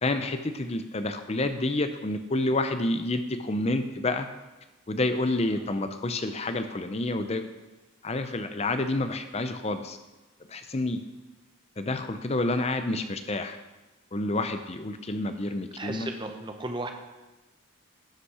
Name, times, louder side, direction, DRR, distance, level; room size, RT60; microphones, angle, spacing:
voice 1, 0.0-4.3 4.9-7.4 8.0-10.0 10.5-11.0 11.8-13.6 14.1-16.1, left 2 dB, 30° left, 9 dB, 0.6 m, -29 dB
voice 2, 15.8-16.9, right 2 dB, 20° right, 5 dB, 0.8 m, -35 dB
12.0 x 5.7 x 4.9 m, 1.1 s
head